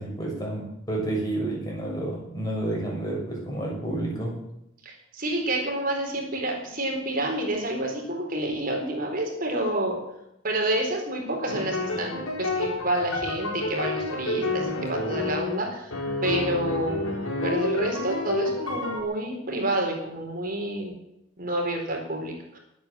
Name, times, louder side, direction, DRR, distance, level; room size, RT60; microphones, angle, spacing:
voice 1, 0.0-4.4, right 1 dB, 20° left, -3 dB, 6.7 m, -30 dB
voice 2, 4.8-10.0 10.4-15.9 16.2-17.1 17.4-20.9 21.4-22.6, right 1 dB, 40° right, 2 dB, 4.1 m, -29 dB
sound 1, 11.5-19.0, left 2 dB, 85° left, 4.7 m, -29 dB
22.0 x 8.7 x 7.3 m, 0.82 s
head